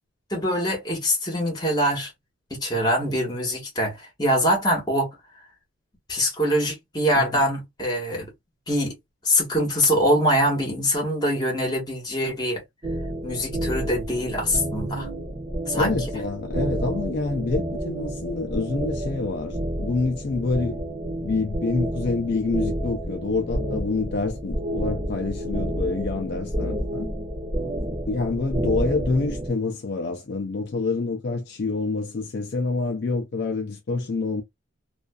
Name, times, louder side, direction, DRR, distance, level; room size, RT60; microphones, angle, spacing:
voice 1, 0.3-2.1 2.5-5.1 6.1-8.3 8.7-8.9 9.2-12.6 13.2-15.1 15.7-16.0, equal, 20° left, 1.1 m, -24 dB
sound 1, 12.8-29.5, right 1 dB, 25° right, 1.0 m, -30 dB
voice 2, 15.7-20.8 21.2-27.1 28.1-34.4, left 3 dB, 55° left, 0.4 m, -27 dB
2.4 x 2.3 x 2.2 m
head